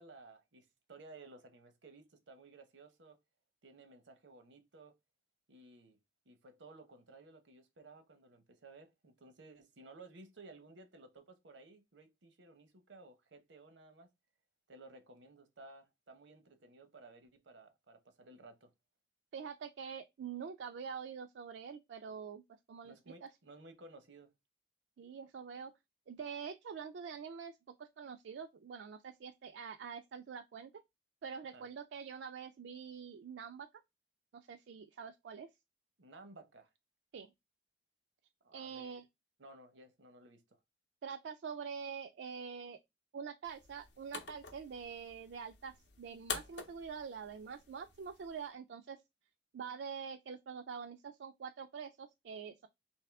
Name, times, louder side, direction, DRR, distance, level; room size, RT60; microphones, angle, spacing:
voice 1, 0.0-3.2 3.6-5.0 5.5-6.0 6.3-14.1 14.7-18.7 22.8-24.3 31.5-31.6 36.0-36.7 38.4-39.0 39.4-40.6, right 2 dB, 90° right, 0.8 m, -57 dB
voice 2, 19.3-22.4 22.7-23.3 25.0-25.7 26.1-30.7 31.2-33.7 34.3-35.5 37.1-37.3 38.5-39.0 41.0-42.8 43.1-49.0 49.5-52.7, right 6 dB, 75° right, 0.3 m, -45 dB
sound 1, 43.4-48.5, left 6 dB, 70° left, 0.6 m, -47 dB
3.5 x 2.7 x 3.4 m
head